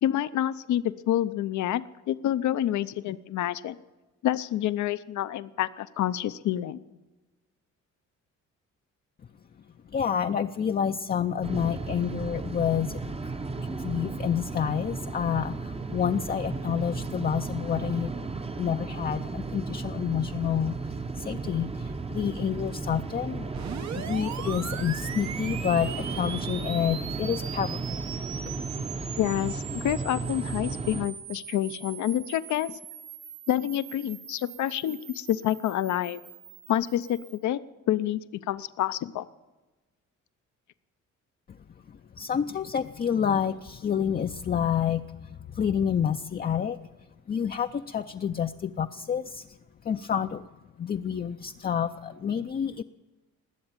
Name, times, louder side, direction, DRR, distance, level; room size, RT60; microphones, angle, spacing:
voice 1, 0.0-3.8 4.2-6.8 29.2-32.8 33.5-36.2 36.7-37.6 37.9-39.3, left 12 dB, 70° left, 14 dB, 0.7 m, -28 dB
voice 2, 9.9-13.2 13.6-18.1 18.6-23.6 23.9-28.0 41.9-46.8 47.3-49.6 49.8-50.5 50.8-52.8, left 8 dB, 30° left, 6 dB, 0.5 m, -29 dB
sound 1, 11.4-31.1, right 3 dB, 20° right, 0.8 m, -34 dB
sound 2, 23.5-37.4, right 8 dB, 65° right, 1.1 m, -41 dB
20.5 x 7.9 x 8.9 m, 1.2 s
cardioid pair, 90°, 30 cm